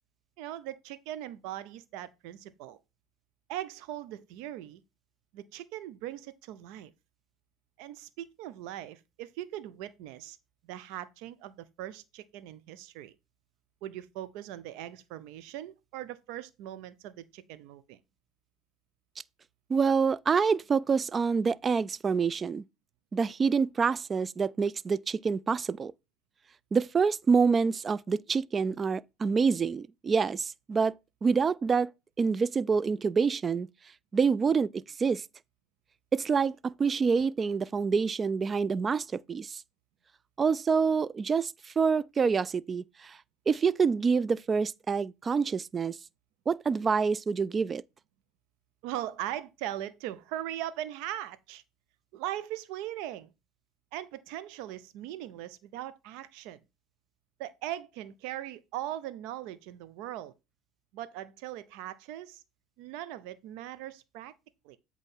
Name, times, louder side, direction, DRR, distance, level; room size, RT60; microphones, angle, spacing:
voice 1, 0.4-2.8 3.5-4.8 5.3-6.9 7.8-10.4 10.6-13.2 13.8-18.0 48.8-51.6 52.1-53.3 53.9-56.6 57.4-60.3 60.9-62.4 62.8-64.3 64.6-64.8, right 13 dB, 70° right, 0.7 m, -40 dB
voice 2, 19.7-22.6 23.1-25.9 26.7-30.9 31.2-31.9 32.2-33.7 34.1-34.7 35.0-35.2 36.1-39.6 40.4-43.2 43.5-46.0 46.5-47.8, right 5 dB, 30° right, 0.3 m, -27 dB
8.1 x 3.1 x 5.4 m
hypercardioid pair, 75°, 0 cm